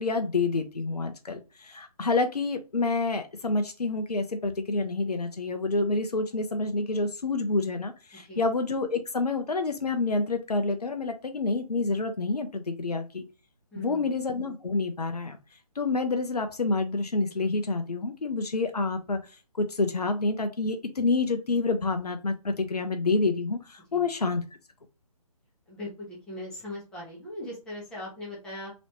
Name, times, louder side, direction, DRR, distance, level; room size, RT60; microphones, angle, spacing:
voice 1, 0.0-13.2 13.8-15.4 15.8-19.2 19.6-24.4, left 3 dB, 80° left, 6 dB, 0.7 m, -28 dB
voice 2, 8.1-8.4 13.7-14.1 23.9-24.1 25.7-28.7, left 1 dB, 5° left, -5 dB, 0.8 m, -40 dB
3.1 x 3.1 x 2.8 m, 0.30 s
figure-of-eight pair, 150°, 20 cm